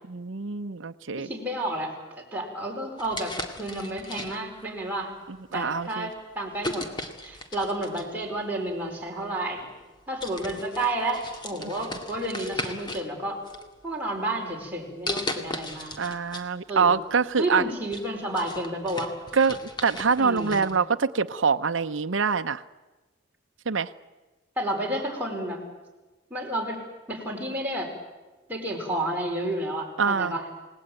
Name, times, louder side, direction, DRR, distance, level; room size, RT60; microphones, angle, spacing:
voice 1, 0.1-1.3 5.3-6.1 11.6-11.7 16.0-17.6 19.3-22.6 23.7-23.9 30.0-30.3, right 5 dB, 80° right, 9 dB, 0.7 m, -25 dB
voice 2, 1.2-1.9 2.3-5.1 5.5-6.8 7.2-9.7 10.1-13.4 13.8-15.9 16.7-17.0 17.4-19.1 20.2-20.6 24.6-25.6 26.3-26.8 27.1-27.9 28.5-30.4, right 1 dB, 10° right, -2 dB, 4.9 m, -31 dB
sound 1, 3.0-4.6 5.4-5.6 6.6-8.2 9.3-9.4 9.8-9.9 10.2-13.1 13.4-14.2 15.1-16.5 16.8-16.9 17.4-20.7, left 1 dB, 25° left, 2.1 m, -36 dB
29.0 x 18.5 x 9.0 m, 1.2 s
head